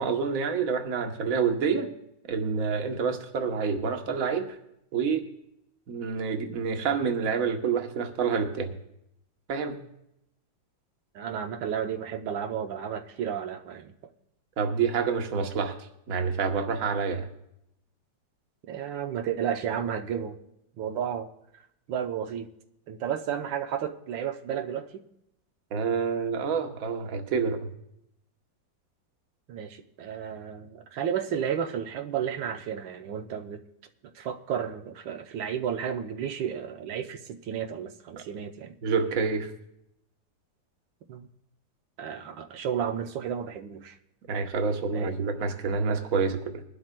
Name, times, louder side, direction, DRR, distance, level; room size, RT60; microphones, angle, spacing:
voice 1, 0.0-1.9 2.3-4.6 4.9-5.2 5.9-8.8 9.5-9.8 14.6-15.8 16.1-17.3 25.7-27.7 38.8-39.5 44.3-46.6, right 5 dB, 55° right, 5 dB, 1.3 m, -27 dB
voice 2, 11.1-13.9 18.7-20.4 20.8-21.3 21.9-22.5 22.9-25.0 29.5-33.6 34.1-38.7 41.1-41.3 42.0-44.0 44.9-45.1, right 8 dB, 90° right, 5 dB, 1.5 m, -32 dB
21.5 x 12.0 x 2.2 m, 0.80 s
omnidirectional pair, 2.0 m